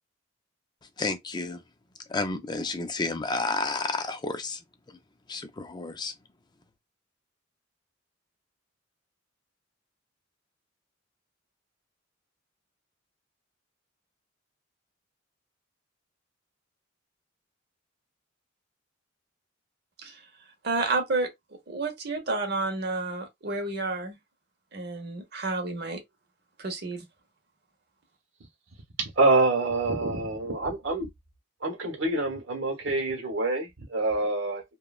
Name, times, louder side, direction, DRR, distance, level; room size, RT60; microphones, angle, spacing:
voice 1, 1.0-1.6 2.1-4.6 5.3-6.1, left 3 dB, 20° left, 0.4 m, -31 dB
voice 2, 20.6-21.3 21.7-24.2 24.7-26.0 26.6-27.0, right 3 dB, 55° right, 0.8 m, -30 dB
voice 3, 29.0-31.1 31.6-34.6, right 2 dB, 75° right, 1.1 m, -26 dB
3.0 x 2.2 x 2.3 m
head